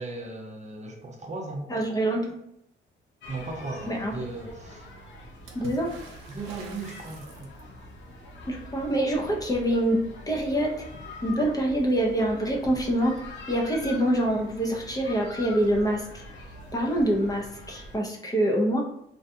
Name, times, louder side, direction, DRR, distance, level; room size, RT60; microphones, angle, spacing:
voice 1, 0.0-1.7 3.3-4.9 6.3-7.5, right 3 dB, 35° right, 1 dB, 0.6 m, -37 dB
voice 2, 1.7-2.4 3.9-4.1 5.5-5.9 8.5-10.0 10.3-10.7 11.2-13.1 13.5-16.1 16.7-18.8, right 1 dB, 20° left, -1 dB, 0.5 m, -25 dB
sound 1, 3.2-18.0, left 1 dB, 65° left, 0.7 m, -44 dB
Water / Splash splatter, 5.5-7.9 11.1-11.2 11.5-12.3 13.4-13.5, right 3 dB, 85° right, 0.6 m, -46 dB
2.5 x 2.2 x 2.7 m, 0.74 s
cardioid pair, 90°, 20 cm